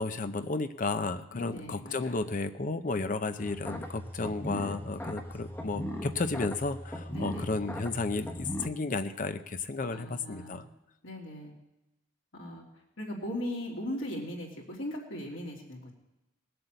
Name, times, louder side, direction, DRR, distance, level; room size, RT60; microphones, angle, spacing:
voice 1, 0.0-10.7, left 3 dB, 40° left, 10 dB, 0.6 m, -33 dB
voice 2, 1.3-2.2 7.1-7.6 9.9-10.7 11.0-11.5 12.3-12.6 13.0-15.9, left 1 dB, 70° left, -1 dB, 3.1 m, -38 dB
sound 1, 3.4-8.7, equal, 10° left, 1.1 m, -38 dB
19.0 x 7.8 x 8.0 m, 0.93 s
head